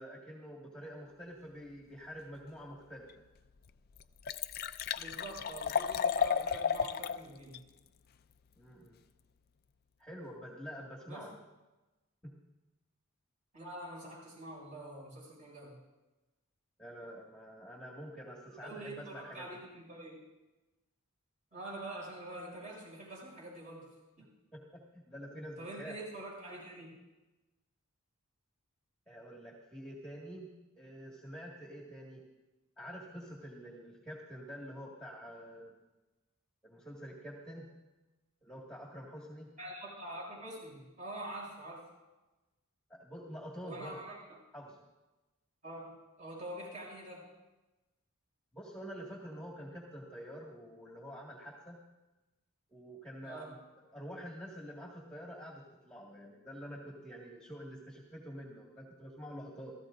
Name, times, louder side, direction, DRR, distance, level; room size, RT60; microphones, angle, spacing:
voice 1, 0.0-3.1 8.6-9.0 10.0-11.4 12.2-12.3 16.8-19.5 24.5-26.0 29.1-30.5 30.8-32.2 32.8-35.7 36.6-37.7 38.4-39.5 42.9-44.0 44.5-44.8 48.5-51.8 52.7-59.7, equal, 5° left, -3 dB, 1.9 m, -47 dB
Liquid, 3.1-3.2 3.6-3.7 3.9-7.2 7.5-7.6, left 7 dB, 45° left, 0.4 m, -33 dB
voice 2, 4.9-7.6 11.1-11.3 13.5-15.7 18.6-20.2 21.5-23.9 24.2-24.3 25.6-26.9 39.6-41.8 43.6-44.3 45.6-47.3 53.2-53.5, right 1 dB, 35° right, -4 dB, 6.9 m, -45 dB
28.5 x 14.5 x 2.6 m, 1.1 s
head